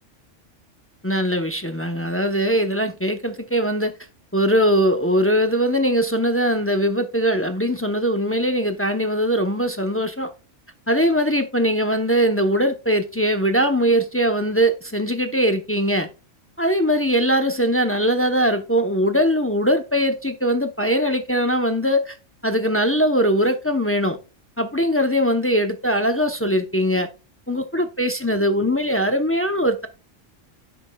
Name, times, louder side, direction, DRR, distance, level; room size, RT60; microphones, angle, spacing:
voice 1, 1.0-3.9 4.3-10.3 10.9-16.1 16.6-22.2 22.4-24.2 24.6-27.1 27.5-29.9, equal, 15° left, 0.5 m, -21 dB
10.5 x 8.7 x 2.3 m
omnidirectional pair, 1.3 m